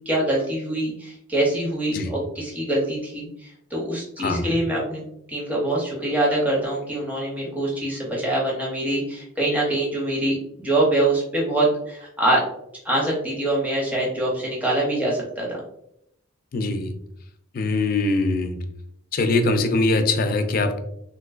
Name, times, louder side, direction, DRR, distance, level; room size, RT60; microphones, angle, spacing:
voice 1, 0.1-5.0 5.3-12.4 12.8-15.6, right 1 dB, 10° right, -4 dB, 0.7 m, -24 dB
voice 2, 4.2-4.5 16.5-16.9 17.5-18.6 19.1-20.8, left 2 dB, 45° left, 6 dB, 0.4 m, -22 dB
3.7 x 2.5 x 2.4 m, 0.76 s
head